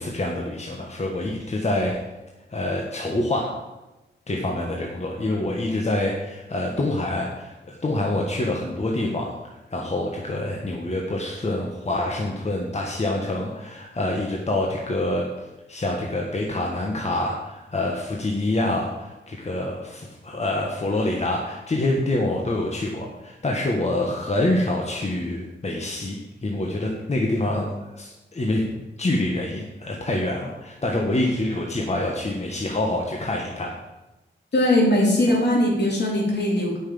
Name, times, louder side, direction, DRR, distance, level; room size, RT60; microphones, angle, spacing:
voice 1, 0.0-2.0 2.5-3.5 4.3-9.3 9.7-15.3 15.7-27.7 27.9-28.6 29.0-33.8, left 1 dB, 35° left, -1 dB, 1.6 m, -26 dB
voice 2, 34.5-36.8, left 1 dB, 60° left, -2 dB, 3.9 m, -20 dB
9.6 x 6.4 x 8.7 m, 1.0 s
wide cardioid pair, 100°, 19 cm